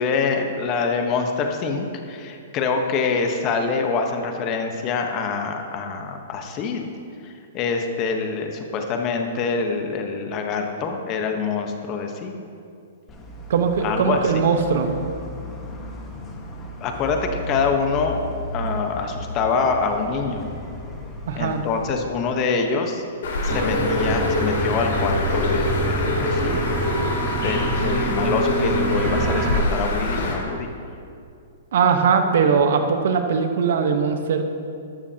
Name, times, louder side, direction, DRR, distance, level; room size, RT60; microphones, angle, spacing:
voice 1, 0.0-6.8 7.2-12.4 13.8-14.4 16.8-18.2 18.5-20.4 21.3-23.0 23.4-26.6 27.4-30.7, left 5 dB, 35° left, 4 dB, 1.2 m, -25 dB
sound 1, 13.1-21.9, left 2 dB, 20° left, 1.6 m, -35 dB
voice 2, 13.5-14.9 18.6-18.7 21.3-21.6 31.7-34.4, right 6 dB, 65° right, 6 dB, 1.2 m, -20 dB
Bird, 23.2-30.3, left 2 dB, 70° left, 3.0 m, -24 dB
sound 2, 23.5-29.6, right 3 dB, 20° right, 1.1 m, -27 dB
13.0 x 12.5 x 2.9 m, 2.4 s
hypercardioid pair, 135°, 0 cm